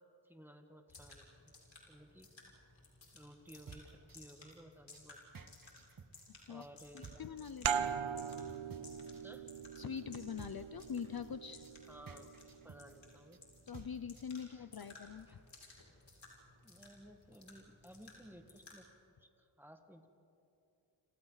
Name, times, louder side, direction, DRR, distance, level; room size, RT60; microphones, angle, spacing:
voice 1, 0.2-1.5 1.9-2.3 3.1-5.2 6.5-7.3 9.2-9.5 11.9-13.4 14.4-14.9 15.3-15.4 16.6-18.9 19.2-20.1, equal, 5° right, 5 dB, 1.8 m, -57 dB
sound 1, 0.9-18.8, left 2 dB, 65° left, 6.3 m, -59 dB
sound 2, 3.5-14.5, right 5 dB, 45° right, 1.2 m, -55 dB
voice 2, 6.9-7.9 8.4-8.6 9.8-11.7 13.7-15.4, left 7 dB, 50° left, 12 dB, 0.7 m, -44 dB
sound 3, 7.6-12.9, right 7 dB, 70° right, 0.8 m, -41 dB
29.5 x 27.5 x 4.1 m, 2.8 s
wide cardioid pair, 85°, 48 cm